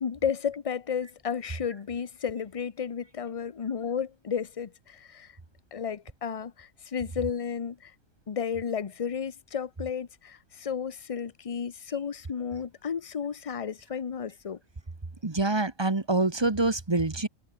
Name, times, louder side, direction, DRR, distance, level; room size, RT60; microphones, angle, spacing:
voice 1, 0.0-5.4 5.7-7.9 8.3-14.6, left 7 dB, 35° left, 0.6 m, -33 dB
voice 2, 15.2-17.3, right 2 dB, 20° right, 1.2 m, -26 dB
omnidirectional pair, 1.4 m